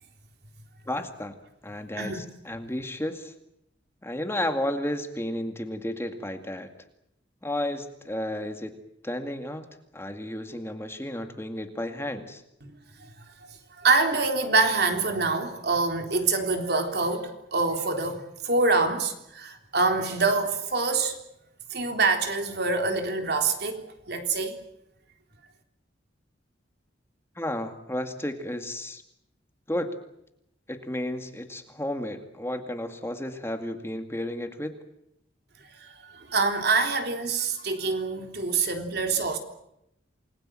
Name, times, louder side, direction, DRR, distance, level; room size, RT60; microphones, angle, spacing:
voice 1, 0.9-1.3 1.6-3.3 4.0-6.7 7.4-8.7 9.0-9.7 9.9-12.4 27.4-29.0 29.7-29.9 30.7-34.7, left 1 dB, 15° left, 2.1 m, -32 dB
voice 2, 13.8-21.2 21.7-24.6 35.8-39.4, right 3 dB, 60° right, 3.6 m, -25 dB
28.5 x 21.5 x 7.7 m
head